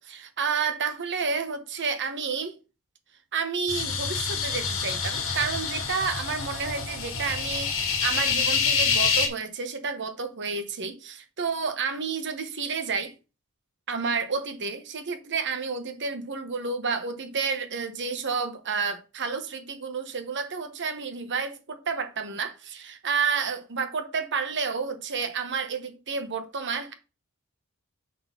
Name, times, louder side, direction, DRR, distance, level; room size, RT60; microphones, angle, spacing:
voice 1, 0.0-2.5 3.3-13.1 13.9-26.9, right 5 dB, 55° right, 1.3 m, -30 dB
sound 1, 3.7-9.3, left 6 dB, 65° left, 1.8 m, -27 dB
6.5 x 3.9 x 6.0 m
head